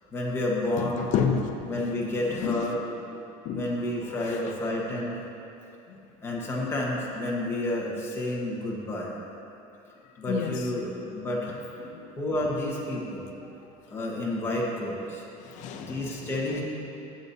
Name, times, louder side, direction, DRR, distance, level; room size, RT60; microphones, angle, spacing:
voice 1, 0.1-1.1 1.7-2.8 3.5-5.2 6.2-9.1 10.2-11.6 12.2-13.3 13.9-15.2 15.9-16.6, left 1 dB, 15° left, -4 dB, 1.5 m, -30 dB
voice 2, 0.8-1.5 2.3-2.7 3.4-3.7 4.1-4.5 5.9-6.0 10.3-10.7 11.8-12.1 15.4-16.6, left 6 dB, 50° left, 4 dB, 0.8 m, -31 dB
13.0 x 8.6 x 2.8 m, 2.8 s
cardioid pair, 160°, 16 cm